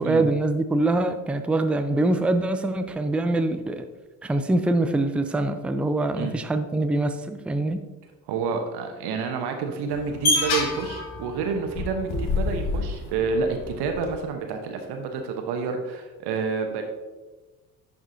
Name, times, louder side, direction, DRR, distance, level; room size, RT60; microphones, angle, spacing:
voice 1, 0.0-3.9 4.2-7.8, right 2 dB, 5° right, 8 dB, 0.4 m, -24 dB
voice 2, 8.3-16.8, right 5 dB, 55° right, 5 dB, 1.0 m, -29 dB
sound 1, 9.9-14.1, left 2 dB, 50° left, 1.6 m, -28 dB
10.5 x 4.9 x 2.8 m, 1.2 s
hypercardioid pair, 55°, 47 cm